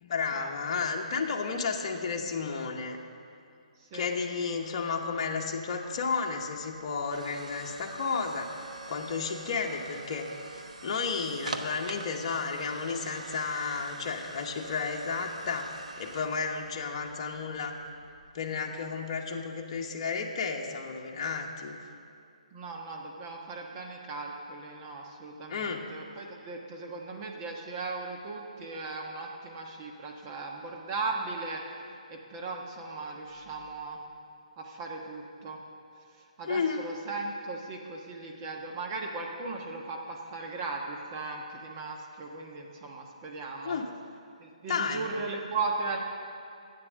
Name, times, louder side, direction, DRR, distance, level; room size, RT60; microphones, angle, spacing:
voice 1, 0.0-3.0 3.9-8.5 8.9-10.3 10.8-17.8 18.3-21.8 25.5-25.8 36.5-36.9 43.6-43.9 44.7-45.1, left 5 dB, 40° left, 1 dB, 1.1 m, -32 dB
voice 2, 3.8-4.1 22.5-31.8 32.1-34.0 34.6-35.6 36.1-43.8 44.4-46.0, right 3 dB, 30° right, 0 dB, 1.2 m, -37 dB
sound 1, 5.6-18.6, right 3 dB, 75° right, 1.0 m, -45 dB
12.0 x 8.8 x 6.4 m, 2.4 s
figure-of-eight pair, 135°, 4 cm